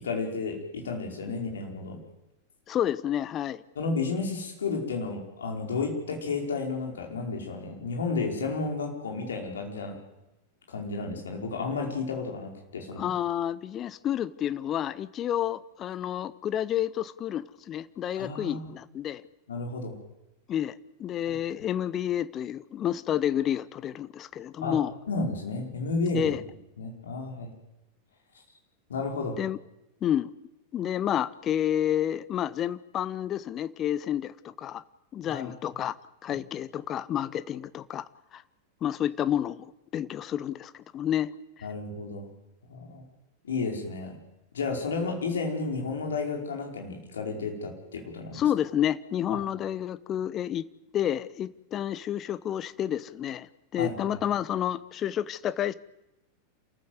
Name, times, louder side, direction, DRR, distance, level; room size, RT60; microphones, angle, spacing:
voice 1, 0.0-2.0 3.7-10.0 10.7-13.1 18.2-18.7 19.5-19.9 21.3-21.4 24.6-24.8 25.1-26.2 26.8-27.5 28.9-29.4 35.2-35.5 41.6-42.3 42.7-43.0 43.4-44.2 44.5-48.4 49.3-49.4 53.8-53.9, left 4 dB, 65° left, 1 dB, 5.0 m, -32 dB
voice 2, 2.7-3.6 13.0-19.2 20.5-24.9 26.1-26.4 29.4-29.6 30.0-30.3 30.7-34.8 35.1-35.9 36.2-38.4 38.8-41.3 48.3-50.7 50.9-55.7, left 10 dB, 30° left, 16 dB, 0.9 m, -30 dB
28.0 x 14.5 x 8.1 m, 0.93 s
figure-of-eight pair, 90°, 0 cm